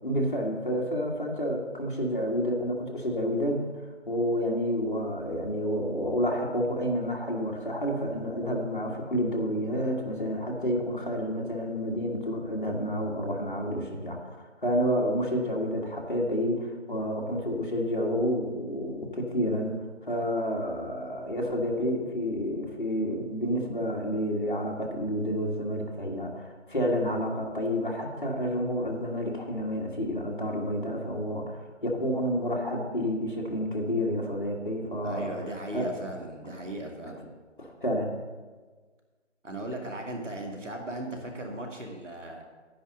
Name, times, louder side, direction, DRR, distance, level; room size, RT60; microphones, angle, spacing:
voice 1, 0.0-3.6 4.1-35.3 35.7-35.9 37.6-38.1, equal, 40° left, -1 dB, 1.6 m, -29 dB
voice 2, 35.0-37.3 39.4-42.4, right 1 dB, 75° right, 1 dB, 2.5 m, -37 dB
10.5 x 10.0 x 3.9 m, 1.4 s
figure-of-eight pair, 180°, 37 cm